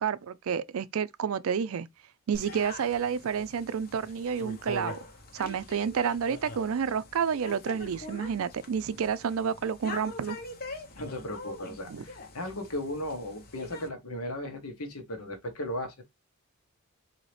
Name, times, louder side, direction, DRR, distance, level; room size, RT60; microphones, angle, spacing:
voice 1, 0.0-1.9 2.3-5.0 5.3-10.4 11.9-12.0, right 7 dB, 70° right, 0.4 m, -30 dB
sound 1, 2.3-13.9, left 2 dB, 40° left, 0.8 m, -43 dB
voice 2, 10.9-16.0, left 1 dB, 75° left, 1.2 m, -36 dB
4.0 x 2.8 x 3.2 m
head